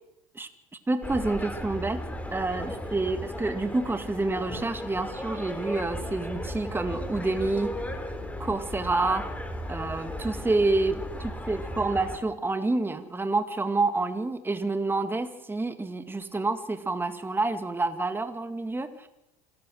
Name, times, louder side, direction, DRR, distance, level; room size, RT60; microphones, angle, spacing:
voice 1, 0.9-2.0 2.3-7.7 8.4-9.3 9.7-19.1, right 3 dB, 10° right, 9 dB, 1.9 m, -28 dB
sound 1, 1.0-12.2, left 1 dB, 10° left, 4.3 m, -36 dB
27.5 x 15.0 x 7.8 m, 0.89 s
hypercardioid pair, 75°, 18 cm